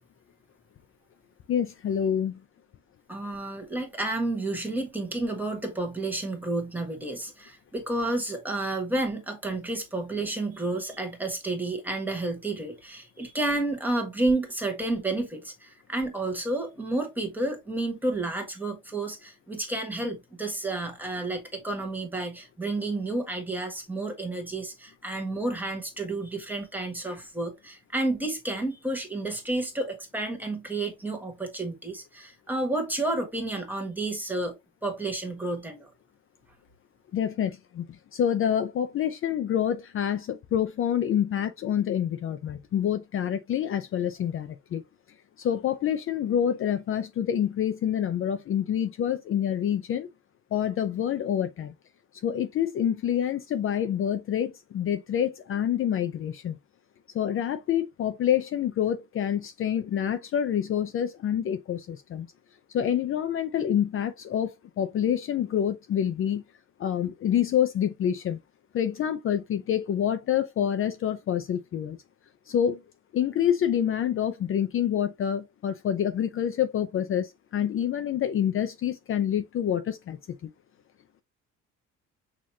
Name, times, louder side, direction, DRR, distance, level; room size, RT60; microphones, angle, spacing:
voice 1, 1.5-2.4 37.1-37.8 38.1-44.8 45.4-50.1 50.5-51.7 52.2-56.6 57.1-62.3 62.7-64.5 64.8-66.4 66.8-68.4 68.7-72.0 72.5-72.8 73.1-80.2 80.4-80.5, left 9 dB, 45° left, 0.5 m, -27 dB
voice 2, 3.1-34.6 34.8-35.9, right 2 dB, 5° right, 1.4 m, -31 dB
6.4 x 2.9 x 2.8 m
cardioid pair, 130°, 31 cm